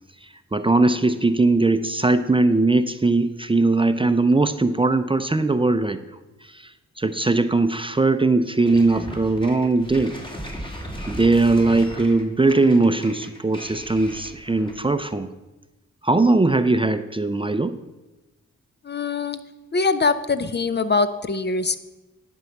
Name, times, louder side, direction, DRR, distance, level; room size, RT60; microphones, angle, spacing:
voice 1, 0.5-6.0 6.5-6.7 7.0-10.2 11.1-15.3 16.0-17.8, right 3 dB, 15° right, 11 dB, 0.5 m, -20 dB
sound 1, 8.6-14.9, equal, 15° left, 2.5 m, -37 dB
voice 2, 18.8-19.4 19.7-21.8, left 4 dB, 35° left, 12 dB, 0.6 m, -23 dB
10.5 x 4.7 x 7.0 m, 1.1 s
cardioid pair, 50°, 30 cm